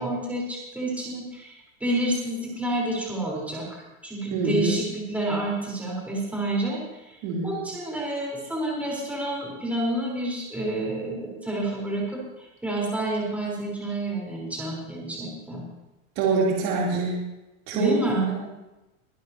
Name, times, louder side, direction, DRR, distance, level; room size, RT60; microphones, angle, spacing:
voice 1, 0.0-7.2 7.4-15.7 17.7-18.5, right 1 dB, 5° right, -4 dB, 4.3 m, -29 dB
voice 2, 4.3-4.8 7.2-7.6 16.2-17.2 17.7-17.9, right 4 dB, 50° right, -4 dB, 3.5 m, -25 dB
23.0 x 12.0 x 2.9 m, 1.0 s
supercardioid pair, 150°, 39 cm